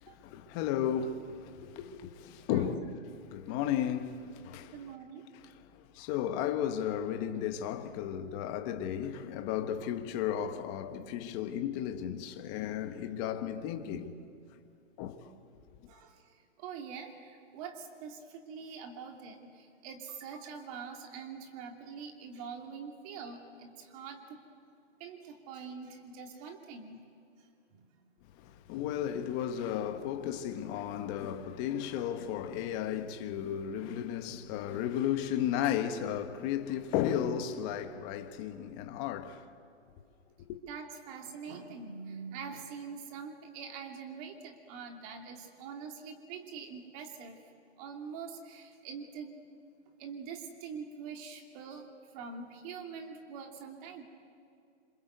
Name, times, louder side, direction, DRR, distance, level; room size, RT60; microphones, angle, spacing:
voice 1, 0.0-2.9 3.3-4.9 5.3-14.3 15.0-15.3 28.3-39.4 40.5-40.6, left 9 dB, 20° left, 1.3 m, -34 dB
voice 2, 2.4-2.8 4.7-5.2 15.9-16.2 16.6-24.4 25.0-27.0 27.7-27.9 40.7-47.4 47.8-49.3 50.0-51.9 52.1-54.0, right 6 dB, 30° right, 2.9 m, -44 dB
27.0 x 27.0 x 8.1 m
hypercardioid pair, 150°, 36 cm